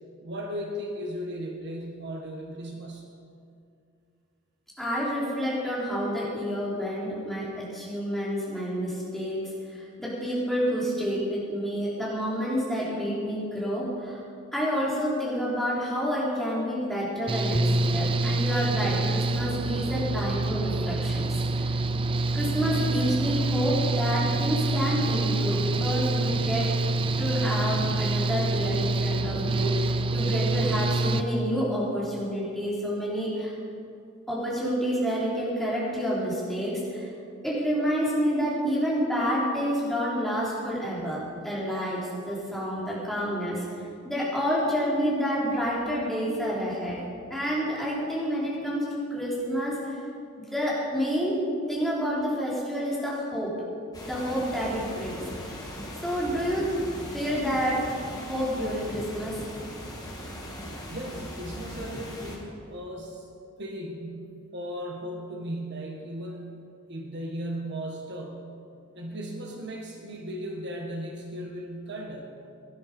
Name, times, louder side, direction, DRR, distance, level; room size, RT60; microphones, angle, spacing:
voice 1, 0.2-3.1 60.9-63.3 63.6-68.5 68.9-72.3, equal, 55° right, 0 dB, 1.6 m, -36 dB
voice 2, 4.8-14.2 14.5-21.4 22.3-26.7 27.2-33.5 34.3-37.1 37.4-43.7 44.0-47.0 47.3-49.8 50.4-51.4 51.7-53.5 54.0-55.5 56.0-56.7 57.1-59.4, equal, ahead, -7 dB, 4.1 m, -29 dB
Engine / Mechanical fan, 17.3-31.2, right 2 dB, 25° right, 0.5 m, -26 dB
sound 1, 53.9-62.4, left 1 dB, 20° left, 2.4 m, -39 dB
17.5 x 11.5 x 5.3 m, 2.4 s
head